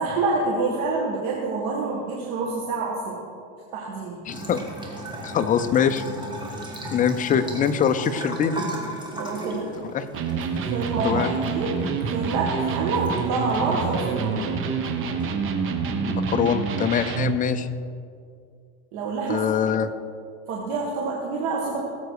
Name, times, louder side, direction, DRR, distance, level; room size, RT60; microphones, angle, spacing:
voice 1, 0.0-3.2 3.7-4.2 5.1-5.2 9.1-9.7 10.6-11.8 12.1-14.6 18.9-19.4 20.5-21.8, right 3 dB, 60° right, -2 dB, 2.0 m, -27 dB
voice 2, 4.3-4.6 5.2-6.0 6.9-8.6 9.8-10.1 11.0-11.3 16.0-17.7 19.3-19.9, left 8 dB, 25° left, 9 dB, 0.6 m, -23 dB
Bathtub (filling or washing) / Trickle dribble, 4.3-15.2, right 1 dB, 15° right, 2.0 m, -37 dB
Electric guitar, 10.1-17.4, right 5 dB, 35° right, 1.2 m, -27 dB
18.5 x 7.9 x 4.8 m, 2.3 s
supercardioid pair, 140°, 34 cm